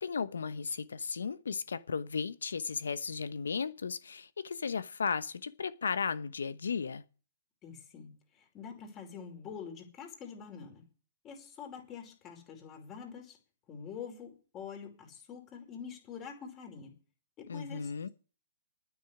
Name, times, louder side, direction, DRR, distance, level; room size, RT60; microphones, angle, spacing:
voice 1, 0.0-7.0 17.5-18.1, left 5 dB, 80° left, 1.0 m, -35 dB
voice 2, 7.6-10.8 11.2-13.4 13.7-16.9 17.4-18.1, left 6 dB, 25° left, 5.2 m, -46 dB
9.6 x 9.3 x 10.0 m
hypercardioid pair, 130°, 0 cm